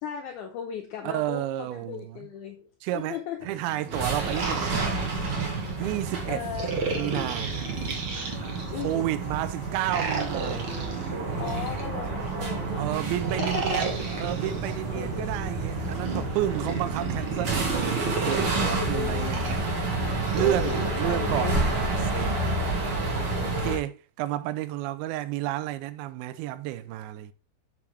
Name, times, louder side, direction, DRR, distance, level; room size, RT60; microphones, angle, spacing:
voice 1, 0.0-2.7 3.0-3.5 6.3-6.8 8.7-9.1 11.4-12.9 13.4-13.8 14.9-15.3 18.6-19.4 20.4-20.8 21.1-21.7 23.3-23.8, left 8 dB, 85° left, 1.7 m, -36 dB
voice 2, 1.0-2.3 2.8-4.9 5.8-6.4 6.9-7.5 8.7-10.7 12.8-13.9 14.2-19.6 20.3-21.9 22.1-22.7 23.5-27.3, right 14 dB, 80° right, 2.3 m, -31 dB
sound 1, 3.4-16.5, right 3 dB, 30° left, 1.7 m, -45 dB
sound 2, 3.8-5.7 6.5-8.9 9.8-12.3 13.1-14.7 15.7-18.5 19.2-20.9, right 4 dB, 65° right, 1.3 m, -33 dB
sound 3, 3.9-23.8, right 3 dB, 45° right, 2.0 m, -30 dB
7.1 x 6.1 x 3.2 m
omnidirectional pair, 4.5 m